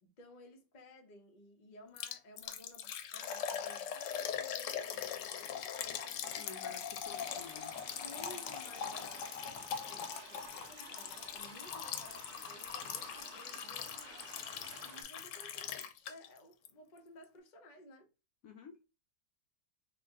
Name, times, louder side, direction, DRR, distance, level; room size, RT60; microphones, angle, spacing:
voice 1, 0.0-6.3 7.9-14.4 14.8-18.1, left 1 dB, 40° left, 0.6 m, -57 dB
Liquid, 2.0-16.4 16.6-16.7 17.2-17.3, left 8 dB, 85° left, 1.2 m, -41 dB
voice 2, 6.4-7.7 9.9-10.0 18.4-18.8, left 5 dB, 70° left, 0.9 m, -52 dB
sound 1, 7.0-15.0, right 4 dB, 65° right, 1.4 m, -54 dB
3.6 x 2.1 x 3.5 m
omnidirectional pair, 1.8 m